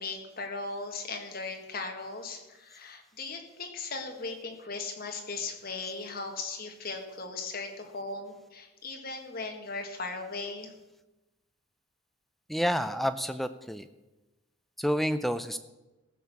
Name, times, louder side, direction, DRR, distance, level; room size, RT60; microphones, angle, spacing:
voice 1, 0.0-10.7, left 3 dB, 45° left, 3 dB, 1.8 m, -38 dB
voice 2, 12.5-13.8 14.8-15.6, equal, ahead, 11 dB, 0.4 m, -29 dB
14.5 x 6.4 x 7.1 m, 1.1 s
head